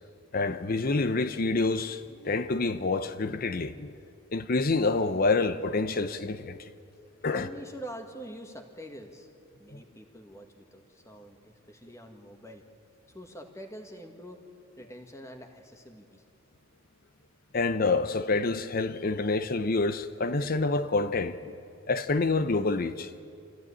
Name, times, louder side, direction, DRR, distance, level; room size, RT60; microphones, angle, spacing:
voice 1, 0.3-3.9 4.3-6.7 7.2-7.5 9.7-9.8 17.5-21.5 21.9-23.1, left 3 dB, 40° left, 0.6 m, -27 dB
voice 2, 7.3-9.3 9.6-12.6 13.1-14.4 14.8-16.2, equal, 15° left, 1.8 m, -45 dB
24.5 x 15.0 x 9.9 m
head